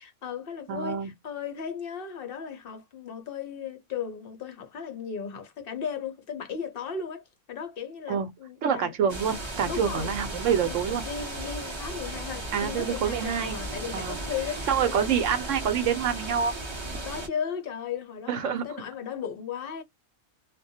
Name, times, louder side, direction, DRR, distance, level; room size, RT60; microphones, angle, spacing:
voice 1, 0.0-8.9 9.7-10.1 10.6-15.1 17.0-19.8, left 7 dB, 55° left, 0.6 m, -36 dB
voice 2, 0.7-1.1 8.1-8.3 8.6-11.0 12.5-13.6 13.9-14.2 14.7-16.5 16.9-17.0 18.3-18.7, right 7 dB, 65° right, 0.9 m, -27 dB
sound 1, 9.1-17.3, right 2 dB, 30° right, 0.5 m, -36 dB
2.3 x 2.1 x 2.6 m
omnidirectional pair, 1.5 m